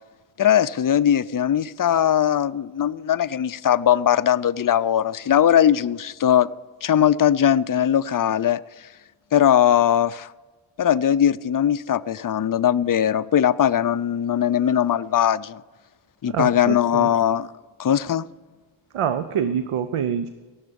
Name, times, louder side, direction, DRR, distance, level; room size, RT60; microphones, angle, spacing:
voice 1, 0.4-6.5 6.8-8.6 9.3-10.3 10.8-15.6 16.2-17.5 17.8-18.2, left 10 dB, 45° left, 0.4 m, -20 dB
voice 2, 16.3-17.1 18.9-20.3, right 8 dB, 90° right, 0.7 m, -25 dB
17.5 x 7.2 x 5.2 m
wide cardioid pair, 60°, 50 cm